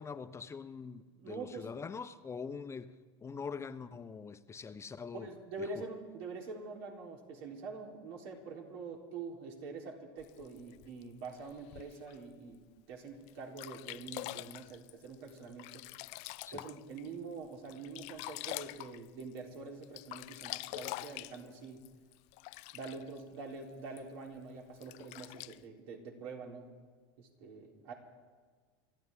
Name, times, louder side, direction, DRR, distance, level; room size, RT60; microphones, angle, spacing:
voice 1, 0.0-5.3 5.6-5.9 16.4-16.6, left 5 dB, 20° left, 0.8 m, -44 dB
voice 2, 1.2-1.7 5.1-12.6 12.9-15.9 16.5-21.8 22.7-26.7 27.2-27.9, right 4 dB, 70° right, 3.7 m, -45 dB
Sink (filling or washing), 10.2-12.2 12.8-12.9 13.3-13.4 13.6-17.1 17.4-19.6 19.8-23.2 24.0-24.1 24.8-25.6, left 20 dB, 55° left, 0.5 m, -45 dB
27.0 x 14.5 x 3.7 m
hypercardioid pair, 100°, 14 cm